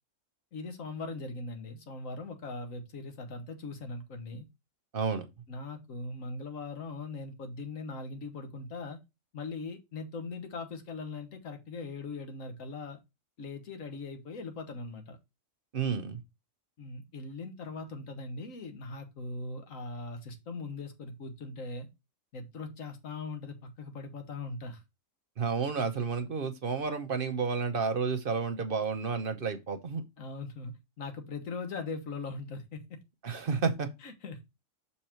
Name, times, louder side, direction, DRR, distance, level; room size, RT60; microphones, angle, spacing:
voice 1, 0.5-4.5 5.5-9.0 9.3-13.0 13.4-15.2 16.8-21.9 22.3-24.8 30.2-33.0 34.0-34.4, left 3 dB, 90° left, 1.6 m, -40 dB
voice 2, 4.9-5.3 15.7-16.2 25.4-30.0 33.2-33.9, right 5 dB, 50° right, 0.9 m, -31 dB
6.5 x 4.3 x 4.4 m
omnidirectional pair, 1.3 m